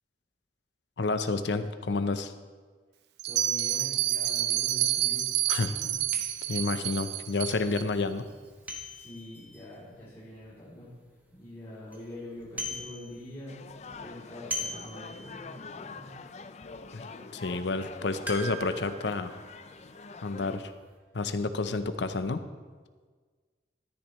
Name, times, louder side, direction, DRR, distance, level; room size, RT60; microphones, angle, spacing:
voice 1, 1.0-2.3 5.5-5.7 6.5-8.2 16.9-17.1 17.3-19.4 20.2-20.7 21.1-22.4, left 3 dB, 80° left, 10 dB, 0.7 m, -30 dB
voice 2, 3.2-5.2 5.6-5.9 6.8-6.9 8.9-10.9 11.3-16.1, left 1 dB, 15° left, -9 dB, 2.9 m, -45 dB
Bell, 3.2-7.8, right 12 dB, 70° right, 0.5 m, -29 dB
sound 1, 5.2-5.3 6.1-10.8 11.3-11.4 11.7-12.0 12.3-13.4 13.7-15.7 16.0-16.1 16.6-16.8 18.2-20.7 20.9-21.0, equal, 10° right, 1.2 m, -41 dB
sound 2, 13.5-20.6, left 4 dB, 40° left, 0.4 m, -45 dB
13.5 x 10.5 x 3.1 m, 1.5 s
head